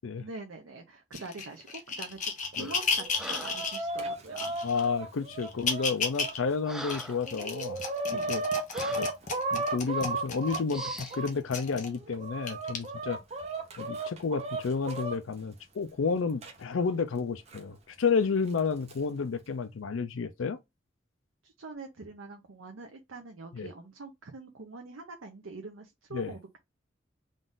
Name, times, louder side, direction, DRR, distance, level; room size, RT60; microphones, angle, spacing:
voice 1, 0.2-2.2 2.5-4.5 8.1-8.3 21.4-26.6, right 3 dB, 85° right, 0.7 m, -44 dB
sound 1, 1.1-3.8 4.4-4.9 5.4-6.4 6.8-11.9 12.5-12.8 13.5-13.6, left 5 dB, 40° left, 0.8 m, -34 dB
Breathing, 2.6-2.9 3.2-3.7 4.7-5.0 5.7-5.8 6.3-7.3 7.8-7.9 8.7-9.1 9.8-10.1 10.7-11.2, right 1 dB, 5° right, 0.4 m, -43 dB
Chicken rooster, 2.9-6.3 6.9-7.0 7.2-11.3 11.9-15.2 16.4-16.5 17.5-17.6 18.6-18.9, right 2 dB, 35° right, 0.8 m, -34 dB
voice 2, 4.6-7.8 8.3-8.4 9.0-9.1 9.5-13.2 13.8-20.6 23.5-23.7 26.1-26.3, left 5 dB, 90° left, 0.5 m, -31 dB
3.8 x 2.5 x 3.7 m
head